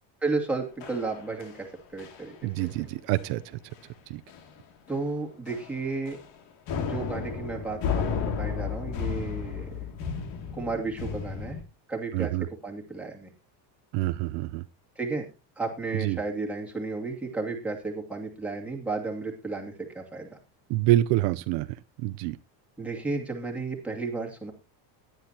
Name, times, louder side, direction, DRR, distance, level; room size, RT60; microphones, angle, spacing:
voice 1, 0.2-1.7 1.9-2.7 4.9-6.2 6.8-9.7 10.5-11.6 11.9-12.3 12.6-13.3 15.0-15.2 15.6-20.4 22.8-24.5, right 3 dB, 5° right, -2 dB, 2.5 m, -33 dB
sound 1, 0.8-1.7 2.0-2.3 2.6-2.8 3.1-3.3 3.7-3.8 4.3-4.6 4.9-5.1 5.5-6.4 6.7-11.6, left 6 dB, 60° left, 2.6 m, -33 dB
voice 2, 2.4-3.6 4.1-4.2 12.1-12.5 13.9-14.6 15.9-16.2 20.7-21.7 22.0-22.4, right 15 dB, 70° right, 13 dB, 0.7 m, -26 dB
17.5 x 11.0 x 2.9 m, 0.28 s
cardioid pair, 155°, 48 cm